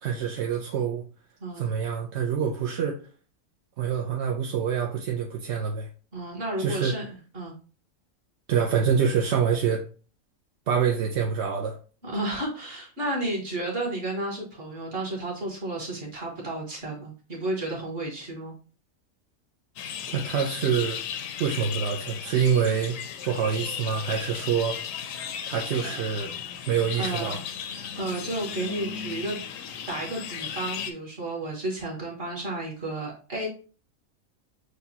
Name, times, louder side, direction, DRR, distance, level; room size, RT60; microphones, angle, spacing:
voice 1, 0.0-1.0 1.6-3.0 3.8-5.9 6.6-6.9 8.5-9.8 10.7-11.8 20.1-21.0 21.4-23.0 23.2-24.8 25.5-26.3 26.7-27.4, right 7 dB, 65° right, 0.8 m, -26 dB
voice 2, 1.4-1.7 6.1-7.5 12.0-18.5 25.8-26.0 27.0-27.4 28.0-29.4 29.9-33.5, right 2 dB, 45° right, 1.6 m, -32 dB
sound 1, 19.8-30.9, left 8 dB, 75° left, 0.9 m, -36 dB
6.5 x 2.3 x 2.7 m
omnidirectional pair, 1.4 m